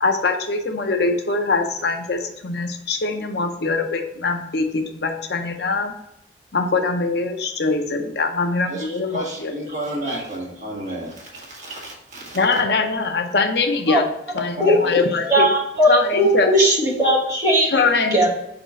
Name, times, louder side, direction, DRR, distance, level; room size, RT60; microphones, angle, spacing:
voice 1, 0.0-5.9 6.5-9.5 12.3-14.1 14.3-15.5 15.9-16.5 17.7-18.3, left 3 dB, 65° left, 0.7 m, -22 dB
voice 2, 8.7-12.6 14.4-15.0, right 1 dB, 40° right, 1.9 m, -32 dB
voice 3, 14.6-15.0 15.3-17.8 18.1-18.3, equal, 20° right, 1.9 m, -18 dB
5.0 x 4.4 x 5.0 m
head